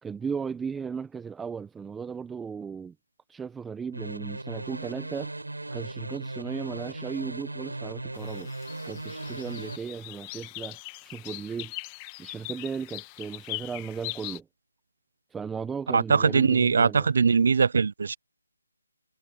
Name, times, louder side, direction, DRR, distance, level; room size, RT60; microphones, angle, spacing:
voice 1, 0.0-2.9 3.3-5.3 5.7-8.5 8.8-11.7 12.2-14.4 15.3-17.1, right 6 dB, 5° right, 1.0 m, -36 dB
sound 1, 3.9-9.8, right 2 dB, 85° right, 4.1 m, -37 dB
sound 2, 8.1-14.4, left 28 dB, 20° left, 1.8 m, -41 dB
voice 2, 15.9-18.2, right 5 dB, 55° right, 0.6 m, -21 dB
figure-of-eight pair, 155°, 0 cm